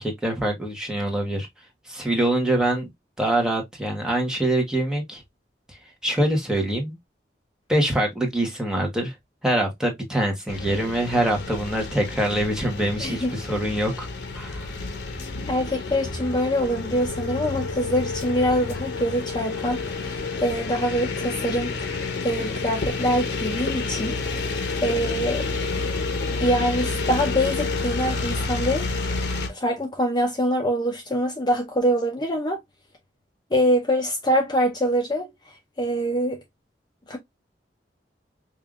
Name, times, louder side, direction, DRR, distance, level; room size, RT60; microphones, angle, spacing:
voice 1, 0.0-1.5 1.9-2.9 3.2-5.2 5.7-5.8 6.0-7.0 7.7-9.1 9.4-14.1 14.3-14.7, right 1 dB, 5° right, 1.0 m, -24 dB
sound 1, 10.5-29.5, left 3 dB, 75° left, 0.9 m, -29 dB
voice 2, 13.0-13.3 15.5-21.7 22.2-24.2 24.8-25.5 26.4-28.9 29.5-32.6 33.5-35.3 35.8-36.4 37.1-37.2, equal, 25° left, 0.7 m, -24 dB
5.0 x 2.7 x 2.4 m
head